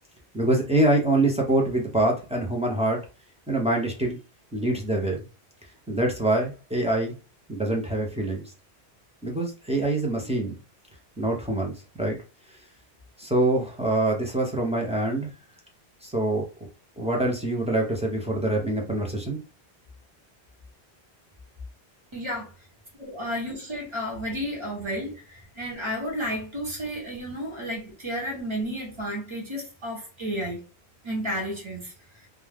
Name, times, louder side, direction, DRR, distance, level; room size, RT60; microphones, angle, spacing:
voice 1, 0.3-3.0 3.5-4.2 4.5-5.2 5.9-7.1 7.5-8.4 9.2-10.5 11.2-12.2 13.2-15.3 16.0-16.5 17.0-19.4, right 1 dB, 10° right, 0.4 m, -25 dB
voice 2, 22.1-22.5 23.0-30.6 31.0-31.9, equal, 30° right, 0.9 m, -32 dB
2.3 x 2.2 x 3.3 m
omnidirectional pair, 1.1 m